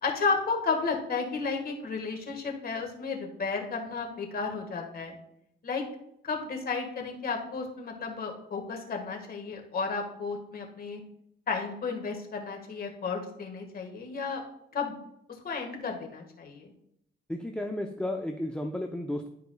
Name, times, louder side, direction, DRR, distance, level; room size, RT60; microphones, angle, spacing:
voice 1, 0.0-5.1 5.6-5.8 6.2-11.0 11.5-14.4 14.7-14.9 15.4-16.7, left 4 dB, 45° left, 2 dB, 1.7 m, -33 dB
voice 2, 17.3-19.3, left 1 dB, 5° left, 4 dB, 0.6 m, -33 dB
11.5 x 4.6 x 2.3 m, 0.76 s
cardioid pair, 85°, 20 cm